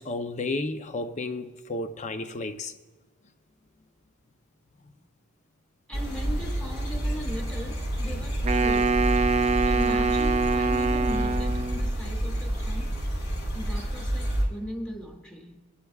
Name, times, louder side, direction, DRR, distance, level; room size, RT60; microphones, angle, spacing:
voice 1, 0.0-2.8 4.8-4.9, left 2 dB, 35° left, 0.6 m, -32 dB
sound 1, 5.9-14.4, right 1 dB, 90° left, 4.1 m, -29 dB
voice 2, 5.9-9.1 9.7-13.0 13.5-15.6, equal, 5° left, 1.3 m, -39 dB
Wind instrument woodwind instrument, 8.4-11.9, right 4 dB, 30° right, 0.4 m, -24 dB
26.0 x 11.5 x 2.4 m
head